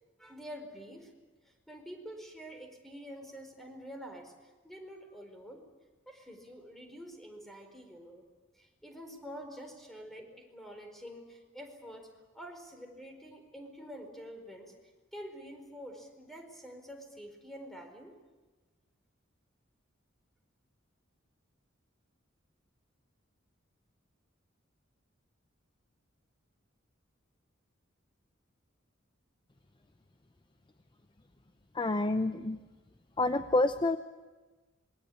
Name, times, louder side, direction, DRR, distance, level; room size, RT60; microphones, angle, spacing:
voice 1, 0.2-1.1 1.4-5.6 6.1-8.3 8.5-12.1 12.3-14.7 15.1-18.2, equal, ahead, 4 dB, 4.5 m, -47 dB
voice 2, 31.7-32.6 33.2-34.0, left 2 dB, 25° left, 9 dB, 0.7 m, -28 dB
26.0 x 22.0 x 8.5 m, 1.2 s
head